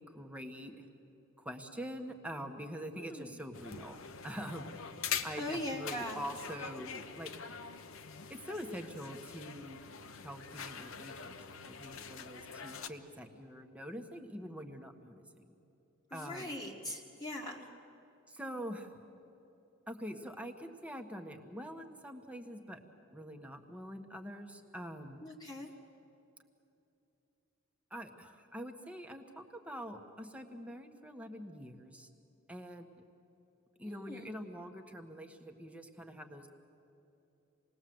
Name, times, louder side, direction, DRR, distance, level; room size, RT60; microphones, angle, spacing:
voice 1, 0.1-0.7 1.4-4.8 5.2-7.3 8.3-9.9 10.2-11.4 11.7-15.5 16.1-16.5 18.3-19.0 19.9-22.8 23.1-25.2 27.9-32.1 32.5-32.9 33.8-36.5, equal, 5° right, 4 dB, 1.5 m, -45 dB
voice 2, 2.9-3.4 5.4-6.2 16.1-17.7 25.2-25.7 33.9-34.4, left 1 dB, 20° left, -2 dB, 1.7 m, -41 dB
sound 1, 3.5-12.9, left 7 dB, 70° left, 1.1 m, -44 dB
27.5 x 20.0 x 7.9 m, 2.9 s
head